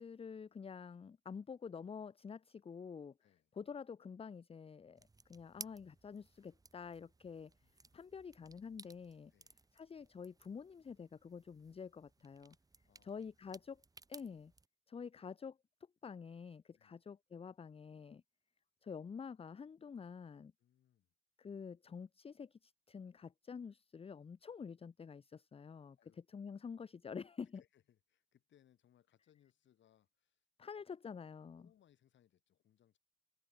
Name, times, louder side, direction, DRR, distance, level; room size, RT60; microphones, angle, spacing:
voice 1, 0.0-3.1 3.6-7.5 7.9-9.3 9.7-12.6 13.0-13.8 14.1-14.5 14.9-15.6 16.0-18.2 18.8-20.5 21.4-26.0 26.3-27.6 30.6-31.7, left 6 dB, 30° left, 0.7 m, -48 dB
voice 2, 3.2-3.5 7.2-7.7 9.3-9.6 12.2-12.3 12.6-13.1 16.7-17.0 20.6-21.1 25.9-26.2 27.4-30.4 31.5-33.0, left 10 dB, 70° left, 6.0 m, -72 dB
sound 1, 5.0-14.7, right 3 dB, 20° right, 1.0 m, -59 dB
cardioid pair, 90°, 20 cm